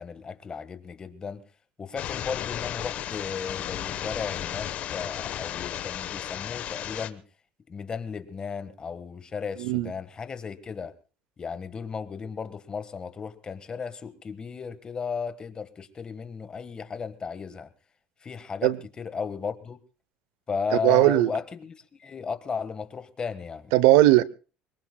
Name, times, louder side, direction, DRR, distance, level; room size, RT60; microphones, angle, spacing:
voice 1, 0.0-1.4 1.8-7.2 7.7-10.9 11.4-17.7 18.2-19.8 20.5-23.7, left 5 dB, 30° left, 1.5 m, -35 dB
sound 1, 2.0-7.1, left 11 dB, 55° left, 1.1 m, -34 dB
voice 2, 9.6-9.9 18.6-18.8 20.8-21.3 23.7-24.2, right 17 dB, 85° right, 0.7 m, -18 dB
24.0 x 21.5 x 2.3 m
supercardioid pair, 105°, 3 cm